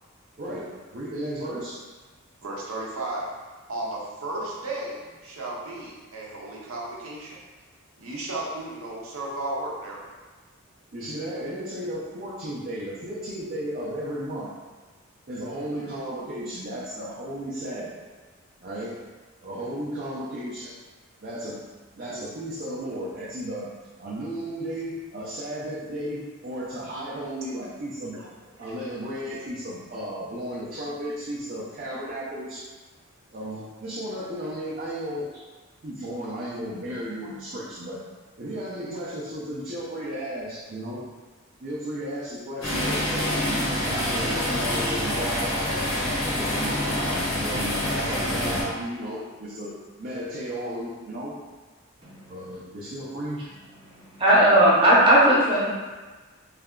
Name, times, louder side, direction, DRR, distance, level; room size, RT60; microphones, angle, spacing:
voice 1, 0.4-1.8 10.9-14.5 15.3-18.0 18.6-19.0 19.4-20.7 21.2-21.6 21.9-23.7 24.0-28.1 28.6-32.6 33.3-35.3 35.8-38.0 38.4-41.0 41.6-45.7 46.3-49.7 50.0-51.4 52.3-53.4, right 1 dB, 40° right, -8 dB, 0.5 m, -34 dB
voice 2, 2.4-3.2 3.7-7.4 8.0-10.1 28.1-28.3 28.7-28.8, right 2 dB, 75° right, -4 dB, 0.7 m, -34 dB
sound 1, 42.6-48.6, left 1 dB, 80° left, 1.0 m, -26 dB
voice 3, 54.2-55.7, right 1 dB, 25° right, -8 dB, 0.9 m, -17 dB
3.2 x 2.3 x 3.6 m, 1.3 s
head